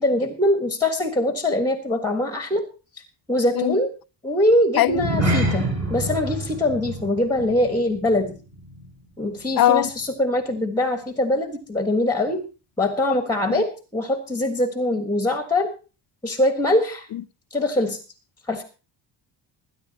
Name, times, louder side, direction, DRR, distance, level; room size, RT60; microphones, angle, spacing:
voice 1, 0.0-2.6 3.3-3.9 4.2-8.3 9.2-12.4 12.8-15.7 16.2-17.1 17.5-18.0 18.5-18.6, left 1 dB, 10° left, 1.4 m, -23 dB
sound 1, 4.9-9.5 9.8-10.1 10.5-10.6, right 1 dB, 35° right, 6.8 m, -28 dB
voice 2, 9.6-9.9 13.5-13.6 17.1-17.2, left 13 dB, 50° left, 0.5 m, -20 dB
22.0 x 10.0 x 2.8 m
cardioid pair, 130°, 46 cm